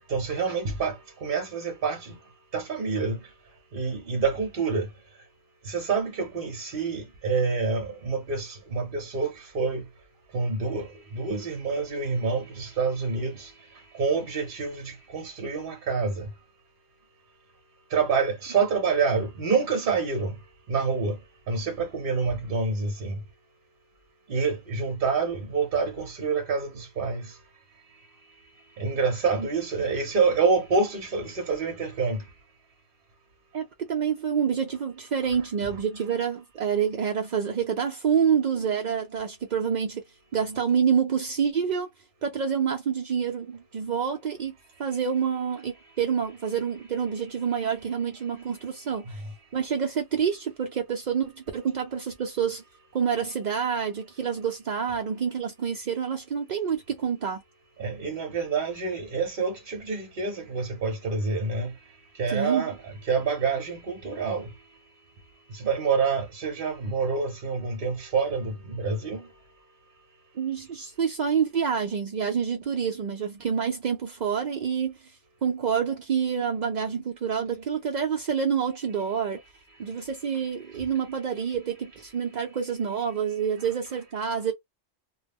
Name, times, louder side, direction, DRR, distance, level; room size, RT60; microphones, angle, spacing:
voice 1, 0.1-2.2 2.5-3.2 3.7-4.9 5.7-9.8 10.3-10.9 11.1-13.5 14.0-16.3 17.9-20.3 20.7-21.2 21.5-23.2 24.3-27.3 28.8-32.2 57.8-61.7 62.2-64.5 65.5-69.3, right 4 dB, 50° right, 0.7 m, -27 dB
voice 2, 33.5-40.0 40.3-41.9 42.2-44.5 44.8-49.2 49.5-52.6 52.9-57.4 62.3-62.7 70.4-75.0 75.4-79.4 79.8-84.5, right 7 dB, 75° right, 0.4 m, -27 dB
2.3 x 2.0 x 3.4 m
omnidirectional pair, 1.3 m